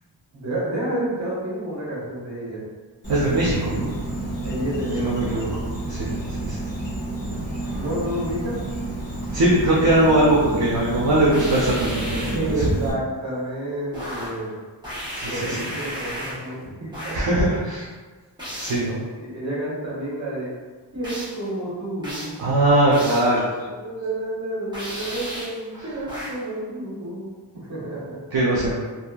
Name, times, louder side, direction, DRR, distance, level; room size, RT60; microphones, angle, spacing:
voice 1, 0.3-2.6 4.4-5.3 7.7-8.6 12.3-14.5 15.2-17.3 19.2-20.5 20.9-22.4 23.7-27.3 27.6-28.2, right 1 dB, 40° right, -6 dB, 1.0 m, -30 dB
Insect, 3.0-12.9, right 1 dB, 25° left, 1.0 m, -30 dB
voice 2, 3.1-3.9 5.0-5.5 5.9-6.1 6.4-6.6 9.3-12.7 15.1-15.6 17.1-17.9 18.6-19.0 22.4-23.7 25.7-25.9 28.3-28.8, right 1 dB, 55° right, -6 dB, 0.6 m, -20 dB
sound 1, 11.3-12.5 13.9-14.4 14.8-16.5 16.9-17.3 18.4-18.9 21.0-21.4 22.0-22.4 22.9-23.4 24.7-25.6 26.1-26.5, equal, 10° right, 1.0 m, -34 dB
2.7 x 2.4 x 2.3 m, 1.4 s
wide cardioid pair, 85°, 43 cm